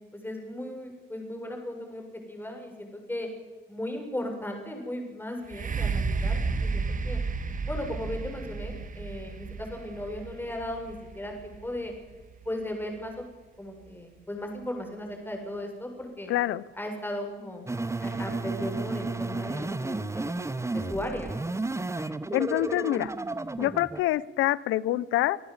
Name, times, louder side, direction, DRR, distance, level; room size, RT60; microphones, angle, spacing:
voice 1, 0.1-3.3 3.7-7.2 7.7-11.9 12.5-13.3 13.6-16.3 16.8-17.6 18.0-21.3, left 1 dB, 10° left, 2 dB, 7.1 m, -36 dB
sound 1, 5.5-13.2 13.9-14.0, right 4 dB, 40° right, 1.9 m, -32 dB
voice 2, 16.3-16.6 22.0-22.1 22.3-23.1 23.6-25.4, left 15 dB, 90° left, 21 dB, 0.7 m, -26 dB
sound 2, 17.7-24.0, right 3 dB, 15° right, 1.0 m, -32 dB
26.0 x 14.0 x 8.1 m, 1.3 s
cardioid pair, 90°, 20 cm